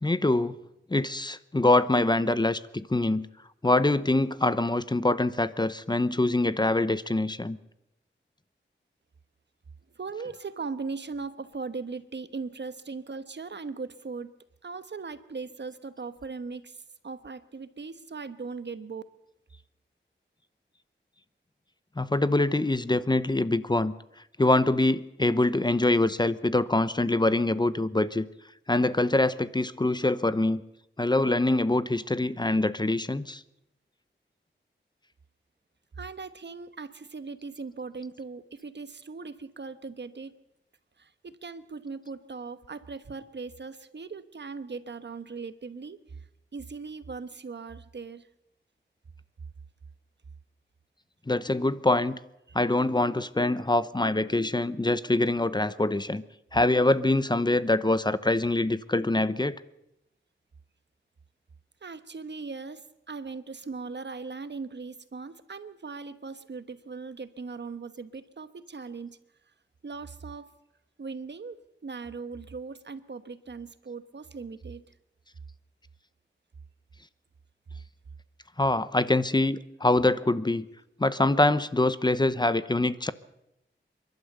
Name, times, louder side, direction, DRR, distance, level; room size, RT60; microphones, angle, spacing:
voice 1, 0.0-0.6 0.9-3.3 3.6-7.6 22.0-23.9 24.4-28.3 28.7-30.6 31.0-33.4 51.3-52.2 52.5-56.2 56.5-59.5 78.6-80.7 81.0-83.1, left 2 dB, 20° left, 14 dB, 0.8 m, -24 dB
voice 2, 9.9-14.3 14.6-19.0 36.0-40.3 41.0-46.2 46.5-48.3 52.5-52.6 61.8-69.2 69.8-70.5 71.0-74.8, right 4 dB, 60° right, 12 dB, 1.2 m, -39 dB
28.0 x 12.0 x 8.0 m, 0.86 s
wide cardioid pair, 85°, 20 cm